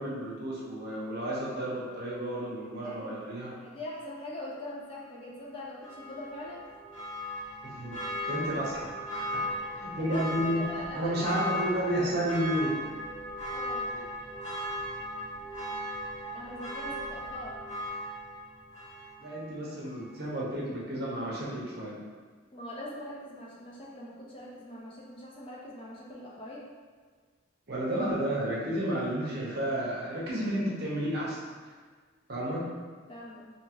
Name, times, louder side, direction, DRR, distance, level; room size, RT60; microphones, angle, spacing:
voice 1, 0.0-3.5 7.6-9.4 9.7-10.6 10.9-12.7 13.9-14.0 19.2-22.0 27.7-31.4 32.3-32.6, right 1 dB, 50° right, -5 dB, 0.6 m, -32 dB
voice 2, 2.8-3.1 3.5-6.7 9.4-10.3 10.6-11.2 13.5-14.0 16.3-17.6 22.5-26.7 33.1-33.5, left 1 dB, 25° left, -4 dB, 0.3 m, -43 dB
Church bell, 5.8-19.5 19.8-19.9, equal, 65° left, 1.3 m, -37 dB
2.7 x 2.4 x 2.8 m, 1.5 s
head